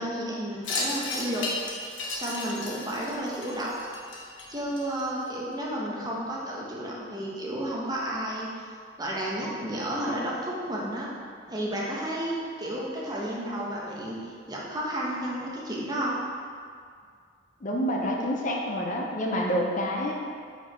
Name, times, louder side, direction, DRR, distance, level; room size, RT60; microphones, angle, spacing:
voice 1, 0.0-1.4 2.1-3.9 4.5-8.5 9.0-11.1 11.5-16.2, right 1 dB, 20° right, -5 dB, 1.0 m, -32 dB
Wind chime, 0.6-5.3, left 2 dB, 80° left, 1.0 m, -34 dB
voice 2, 17.6-20.1, equal, 40° left, -1 dB, 0.6 m, -28 dB
4.8 x 4.6 x 5.1 m, 2.2 s
head